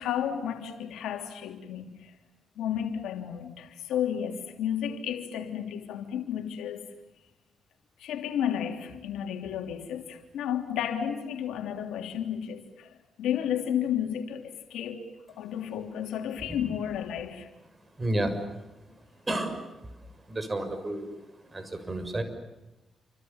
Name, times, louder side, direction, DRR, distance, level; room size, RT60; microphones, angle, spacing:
voice 1, 0.0-2.2 2.6-6.8 8.0-15.1 15.4-17.5, left 9 dB, 90° left, 3.1 m, -32 dB
voice 2, 18.0-18.3 19.3-19.6 20.3-21.1 21.5-22.2, right 1 dB, 25° right, 6.6 m, -30 dB
28.5 x 26.0 x 7.2 m
cardioid pair, 65°, 0 cm